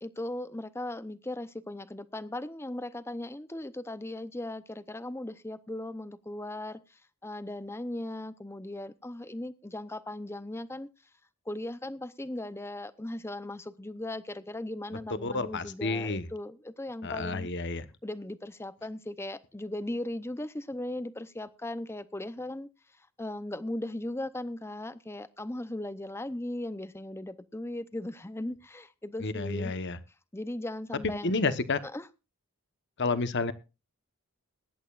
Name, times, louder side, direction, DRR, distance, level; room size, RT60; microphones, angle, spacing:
voice 1, 0.0-10.9 11.5-17.5 18.0-22.7 23.0-29.7 30.3-31.5 31.8-32.1, left 1 dB, 10° left, 14 dB, 0.7 m, -38 dB
voice 2, 15.2-16.2 17.0-17.9 29.2-30.0 31.2-31.8 33.0-33.5, left 3 dB, 50° left, 12 dB, 1.1 m, -30 dB
21.5 x 11.0 x 2.5 m, 0.28 s
head